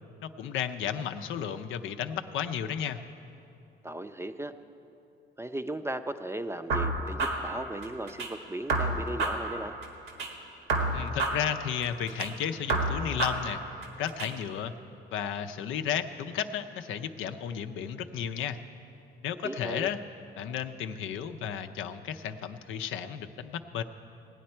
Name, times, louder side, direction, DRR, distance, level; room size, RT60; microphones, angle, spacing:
voice 1, 0.2-3.0 10.9-13.6 14.0-14.7 15.1-18.6 19.2-20.0 20.4-23.8, left 9 dB, 90° left, 7 dB, 0.6 m, -33 dB
voice 2, 3.8-4.5 5.4-9.8 19.4-19.9, right 1 dB, 15° right, 9 dB, 0.5 m, -36 dB
sound 1, 6.7-8.3 8.7-10.3 10.7-12.3 12.7-14.3, right 2 dB, 85° right, 1.7 m, -30 dB
17.5 x 9.3 x 4.4 m, 2.8 s
cardioid pair, 90°, 20 cm